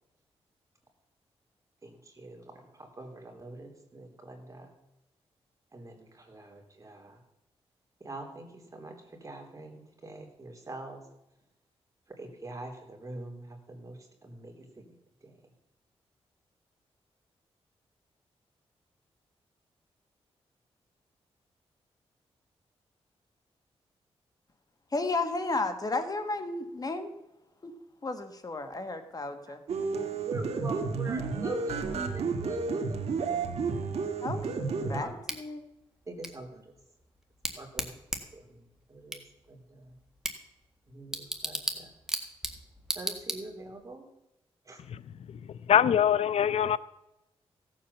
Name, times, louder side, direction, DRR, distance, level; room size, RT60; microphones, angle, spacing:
voice 1, 1.8-4.7 5.7-7.2 8.0-11.0 12.1-14.9 15.2-15.3 29.5-29.6 30.3-31.9 32.1-33.0 34.8-35.1 36.1-36.7 37.6-38.0 38.3-38.6 38.9-39.2 39.5-40.0 40.9-41.9 43.0-44.1 44.7-44.8, right 2 dB, 30° right, 3.3 m, -44 dB
voice 2, 24.9-27.1 27.6-27.7 28.0-29.6 34.2-34.4 34.9-35.6, left 3 dB, 35° left, 1.5 m, -33 dB
sound 1, 29.7-35.0, right 4 dB, 75° right, 1.6 m, -31 dB
Bicycle / Tick, 35.3-43.8, right 1 dB, 5° right, 1.7 m, -38 dB
voice 3, 45.7-46.8, left 9 dB, 75° left, 0.5 m, -22 dB
16.5 x 7.6 x 6.9 m
cardioid pair, 95°, 11 cm